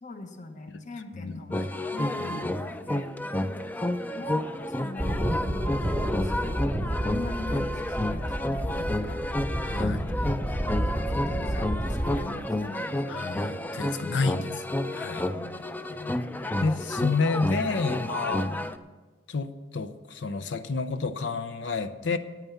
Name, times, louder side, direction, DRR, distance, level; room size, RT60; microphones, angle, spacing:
voice 1, 0.0-2.2 2.8-3.1 4.1-4.4 4.8-6.6 7.0-9.3 10.7-13.4 15.3-16.4 18.3-18.7, left 2 dB, 45° left, 6 dB, 1.0 m, -42 dB
voice 2, 1.1-1.6 2.2-2.5 8.7-8.8 9.6-10.1 13.1-14.6 14.9-15.3 16.6-18.5 19.3-22.2, left 4 dB, 85° left, 10 dB, 0.6 m, -30 dB
sound 1, 1.5-18.8, left 1 dB, 10° left, 0.4 m, -31 dB
sound 2, 5.0-12.3, equal, 5° right, 0.9 m, -30 dB
9.3 x 9.0 x 7.0 m, 1.3 s
head